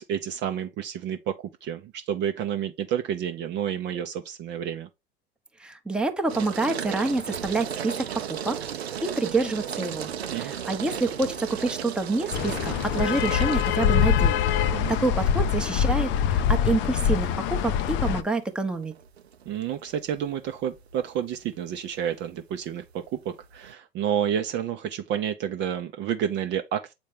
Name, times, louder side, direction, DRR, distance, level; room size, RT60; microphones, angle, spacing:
voice 1, 0.0-4.9 10.3-10.5 14.7-15.0 19.5-26.9, right 9 dB, 35° right, 0.7 m, -30 dB
voice 2, 5.6-8.6 9.0-10.1 10.4-18.9, right 3 dB, 5° right, 0.8 m, -27 dB
water on metal and glass, 6.3-23.7, right 9 dB, 80° right, 0.7 m, -37 dB
sound 1, 12.3-18.2, left 8 dB, 35° left, 0.6 m, -24 dB
7.4 x 4.2 x 3.3 m
figure-of-eight pair, 85°, 32 cm